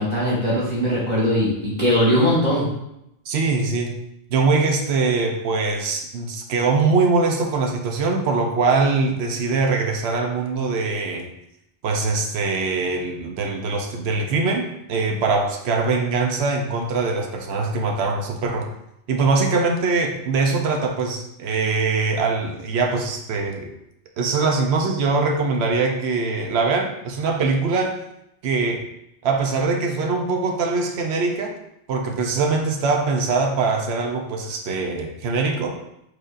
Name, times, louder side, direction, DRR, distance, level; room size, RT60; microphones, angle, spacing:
voice 1, 0.0-2.6, equal, 45° right, -8 dB, 1.5 m, -20 dB
voice 2, 3.3-4.0 4.3-11.3 11.8-18.7 19.1-23.7 24.2-27.9 28.4-28.8 29.2-31.6 31.9-35.8, right 4 dB, 85° right, 2 dB, 0.9 m, -22 dB
4.7 x 4.4 x 2.5 m, 0.81 s
omnidirectional pair, 1.1 m